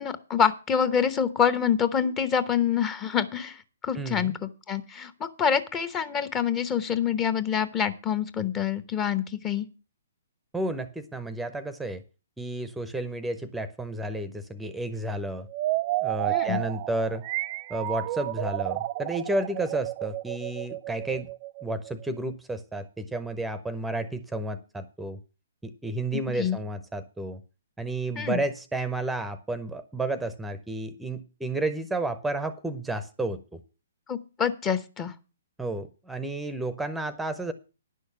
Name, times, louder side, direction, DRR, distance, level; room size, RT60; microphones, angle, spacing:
voice 1, 0.0-9.7 16.3-16.6 26.1-26.6 28.1-28.4 34.1-35.1, left 7 dB, 20° left, 12 dB, 0.9 m, -26 dB
voice 2, 3.9-4.4 10.5-12.0 12.4-15.5 16.0-17.2 17.7-21.3 21.6-25.2 25.6-27.4 27.8-33.6 35.6-37.5, right 2 dB, 5° right, 12 dB, 0.7 m, -31 dB
sound 1, 15.5-22.2, right 18 dB, 35° right, 0.5 m, -31 dB
10.5 x 6.4 x 6.7 m, 0.33 s
figure-of-eight pair, 130°, 0 cm